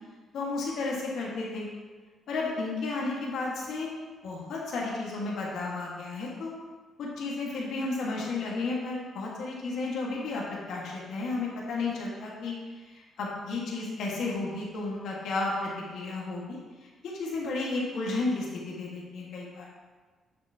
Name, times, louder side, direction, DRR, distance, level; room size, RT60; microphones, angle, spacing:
voice 1, 0.3-1.7 2.3-3.9 4.2-6.5 7.0-12.5 12.9-19.7, left 3 dB, 75° left, -4 dB, 1.7 m, -33 dB
8.0 x 6.6 x 2.9 m, 1.4 s
cardioid pair, 90°, 0 cm